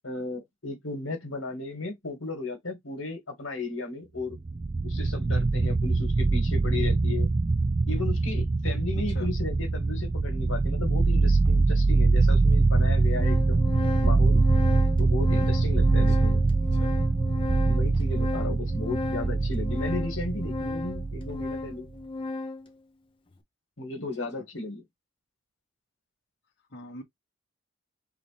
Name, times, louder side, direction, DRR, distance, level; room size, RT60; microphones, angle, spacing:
voice 1, 0.0-4.4 4.8-7.3 7.9-13.7 14.0-14.5 15.0-16.5 17.7-21.9 23.8-24.8, left 3 dB, 85° left, 1.9 m, -35 dB
sound 1, 4.3-21.7, right 3 dB, 25° right, 0.4 m, -23 dB
voice 2, 8.9-9.3 16.1-16.3 16.8-16.9 24.2-24.3 26.7-27.0, left 1 dB, 60° left, 1.5 m, -43 dB
Organ, 11.5-11.6 12.4-12.5 12.8-22.7, left 2 dB, 25° left, 1.0 m, -35 dB
4.9 x 2.8 x 3.3 m
head